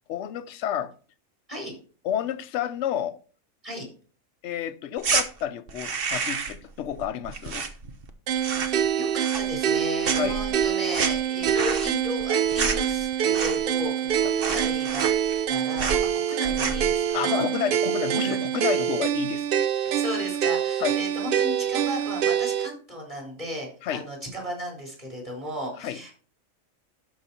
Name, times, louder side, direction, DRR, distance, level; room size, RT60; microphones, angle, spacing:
voice 1, 0.1-0.9 2.0-3.2 4.4-7.6 10.1-10.4 17.1-19.5 20.8-21.0 23.8-24.0 25.8-26.0, left 10 dB, 65° left, 0.9 m, -30 dB
sound 1, 5.0-5.3 5.7-6.7 6.9-8.1 8.4-8.9 9.2-9.8 10.0-13.8 14.1-14.2 14.4-15.5 15.8-16.0 16.4-16.9, right 5 dB, 45° right, 1.1 m, -29 dB
sound 2, 8.3-22.7, right 9 dB, 70° right, 0.5 m, -25 dB
voice 2, 9.0-15.1 15.5-16.0 16.3-17.4 18.1-18.4 19.9-26.2, equal, 25° right, 4.1 m, -35 dB
12.5 x 5.0 x 4.3 m
omnidirectional pair, 1.4 m